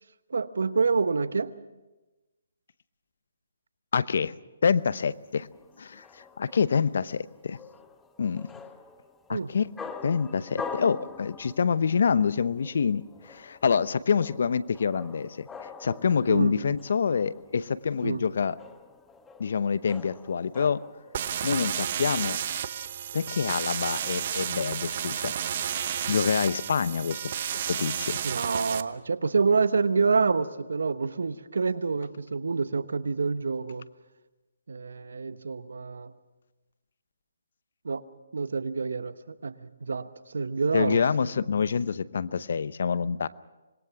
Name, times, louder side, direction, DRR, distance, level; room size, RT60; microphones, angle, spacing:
voice 1, 0.3-1.5 9.3-9.5 16.3-16.5 18.0-18.3 28.2-33.9 34.7-36.1 37.8-38.0 38.3-41.0, right 4 dB, 75° right, 13 dB, 1.1 m, -27 dB
voice 2, 3.9-4.3 4.6-5.5 5.8-7.6 8.2-8.5 9.3-9.7 10.0-15.5 15.8-18.6 19.4-20.8 21.4-22.4 23.1-25.3 26.1-27.3 27.7-28.2 40.7-43.3, left 6 dB, 65° left, 16 dB, 0.8 m, -26 dB
sound 1, 4.9-21.2, left 5 dB, 10° left, 1.1 m, -45 dB
sound 2, 21.1-28.8, right 9 dB, 45° right, 0.9 m, -32 dB
26.0 x 21.0 x 6.0 m, 1.1 s
hypercardioid pair, 150°, 0 cm